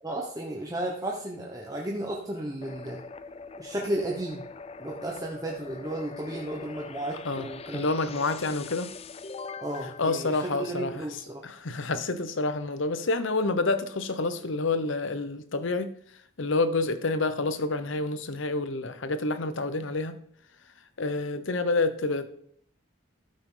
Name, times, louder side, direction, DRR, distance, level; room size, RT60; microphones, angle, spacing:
voice 1, 0.0-3.0 3.6-4.4 4.8-7.8 9.6-11.4, right 1 dB, 15° right, 1.0 m, -33 dB
sound 1, 2.6-11.3, left 4 dB, 30° left, 0.4 m, -43 dB
voice 2, 7.2-8.9 10.0-10.9 11.4-15.9 16.4-20.2 21.0-22.3, left 3 dB, 70° left, 0.9 m, -28 dB
13.0 x 7.6 x 3.9 m
head